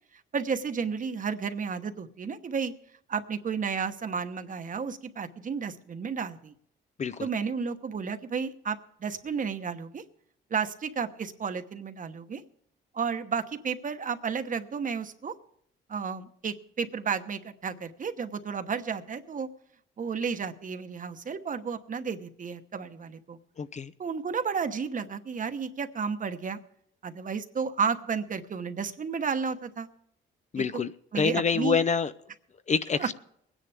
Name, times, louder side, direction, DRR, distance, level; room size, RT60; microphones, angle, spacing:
voice 1, 0.3-2.7 3.1-6.5 7.2-10.0 10.5-12.4 12.9-15.3 15.9-19.5 20.0-23.4 24.0-26.6 27.0-29.9 30.5-31.8 33.0-33.1, right 6 dB, 40° right, 9 dB, 1.1 m, -32 dB
voice 2, 23.6-23.9 30.5-32.1 32.7-33.1, left 5 dB, 35° left, 13 dB, 0.6 m, -27 dB
23.0 x 10.0 x 3.4 m, 0.70 s
cardioid pair, 90°, 20 cm